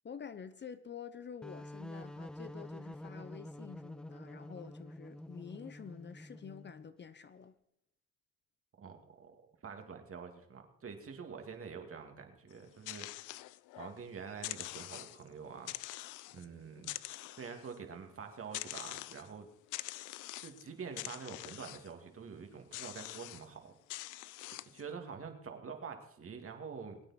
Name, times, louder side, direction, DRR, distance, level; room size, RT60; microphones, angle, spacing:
voice 1, 0.0-7.5, left 7 dB, 35° left, 0.8 m, -48 dB
sound 1, 1.4-6.9, left 1 dB, 5° left, 0.4 m, -48 dB
voice 2, 8.8-13.1 13.7-16.0 16.3-16.9 17.4-19.5 20.4-23.7 24.1-24.4 24.7-27.0, right 6 dB, 45° right, 2.4 m, -47 dB
sound 2, 12.5-14.0 14.3-15.3 15.7-16.5 16.8-17.8 18.5-19.3 19.7-20.7 21.0-21.9 22.7-23.5 23.9-24.8, left 17 dB, 90° left, 0.5 m, -44 dB
22.0 x 8.9 x 4.3 m
cardioid pair, 90°, 30 cm